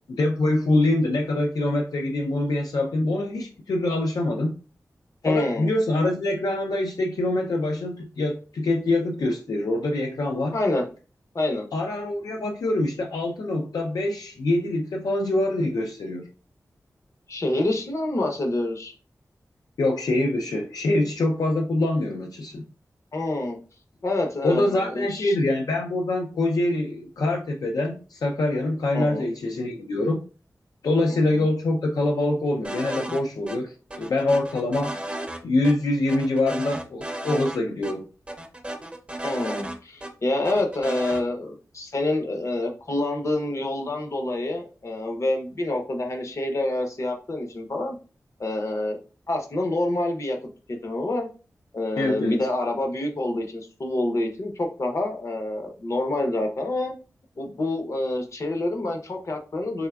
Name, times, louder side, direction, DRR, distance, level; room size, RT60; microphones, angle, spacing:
voice 1, 0.2-4.6 5.2-10.5 11.7-16.3 19.8-22.6 24.4-30.2 30.8-35.0 35.4-38.1 52.0-52.4, left 2 dB, 80° left, 0.4 m, -24 dB
voice 2, 5.2-5.7 10.5-10.9 11.3-11.7 17.3-18.9 23.1-23.6 24.0-25.4 28.9-29.3 31.3-31.4 39.2-48.0 48.4-49.0 49.3-50.4 50.8-51.3 51.7-56.9 57.4-59.9, left 2 dB, 55° left, 0.7 m, -27 dB
sound 1, 32.6-33.2 33.5-33.6 33.9-35.4 35.6-35.7 36.1-37.6 37.8-37.9 38.3-40.1 40.4-41.2, right 1 dB, 20° right, 0.5 m, -34 dB
3.5 x 3.3 x 2.3 m
wide cardioid pair, 90°, 6 cm